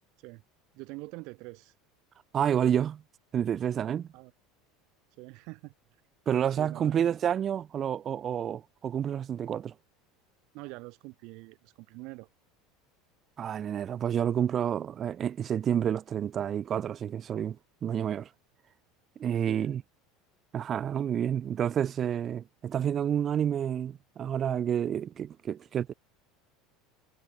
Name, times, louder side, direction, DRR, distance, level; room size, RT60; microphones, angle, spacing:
voice 1, 0.7-1.7 4.1-4.3 5.2-5.7 6.6-7.0 10.5-12.3 19.5-19.8, right 26 dB, 55° right, 3.3 m, -44 dB
voice 2, 2.3-3.0 3.3-4.1 6.3-9.7 13.4-17.6 17.8-18.3 19.2-19.8 20.5-25.9, right 9 dB, 25° right, 0.7 m, -29 dB
cardioid pair, 165°, 0 cm